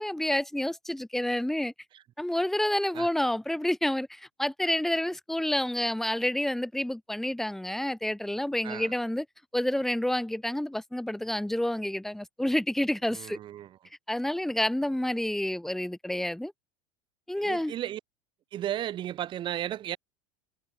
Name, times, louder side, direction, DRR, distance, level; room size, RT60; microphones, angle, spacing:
voice 1, 0.0-1.7 2.2-9.3 9.5-13.4 14.1-16.5 17.3-17.7, left 1 dB, ahead, 1.8 m, -29 dB
voice 2, 13.1-13.8 17.4-18.0 18.5-20.0, right 12 dB, 40° right, 6.7 m, -34 dB
supercardioid pair, 125°, 13 cm